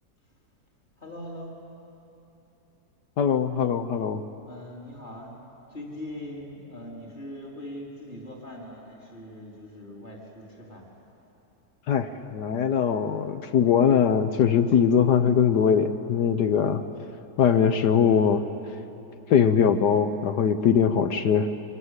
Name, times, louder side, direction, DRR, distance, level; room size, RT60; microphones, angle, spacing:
voice 1, 1.0-1.6 4.4-5.3 5.7-10.9, left 1 dB, 25° left, -3 dB, 4.1 m, -41 dB
voice 2, 3.2-4.2 11.9-16.8 17.4-18.4 19.3-21.5, left 7 dB, 75° left, 9 dB, 1.5 m, -21 dB
28.5 x 24.5 x 8.2 m, 3.0 s
omnidirectional pair, 1.9 m